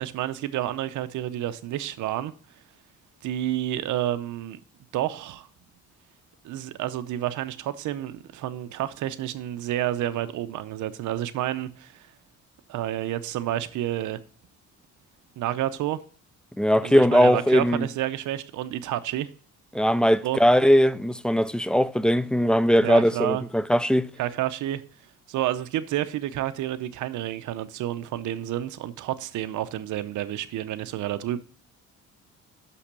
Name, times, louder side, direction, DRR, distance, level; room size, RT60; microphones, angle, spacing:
voice 1, 0.0-2.3 3.2-4.6 4.9-5.5 6.4-12.1 12.7-14.2 15.4-16.0 16.8-19.3 20.2-20.4 22.8-23.4 24.2-24.8 25.3-31.4, right 13 dB, 75° right, 0.7 m, -29 dB
voice 2, 16.6-17.9 19.7-24.1, equal, 5° left, 0.3 m, -20 dB
6.1 x 5.7 x 6.6 m
cardioid pair, 90°, 30 cm